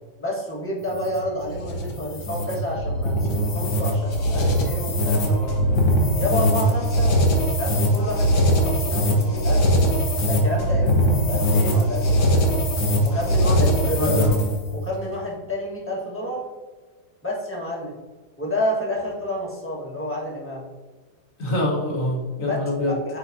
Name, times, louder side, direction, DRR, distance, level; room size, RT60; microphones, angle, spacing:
voice 1, 0.2-5.6 6.2-7.1 7.6-9.7 10.2-12.6 13.0-14.0 14.7-16.5 17.2-18.0 18.4-20.6 22.4-22.6 23.0-23.2, left 1 dB, 10° left, -4 dB, 1.2 m, -30 dB
sound 1, 0.8-14.7, equal, 80° left, 1.9 m, -21 dB
voice 2, 13.6-14.3 21.4-22.9, left 1 dB, 45° left, -2 dB, 1.5 m, -25 dB
8.7 x 4.2 x 2.7 m, 1.4 s
omnidirectional pair, 2.1 m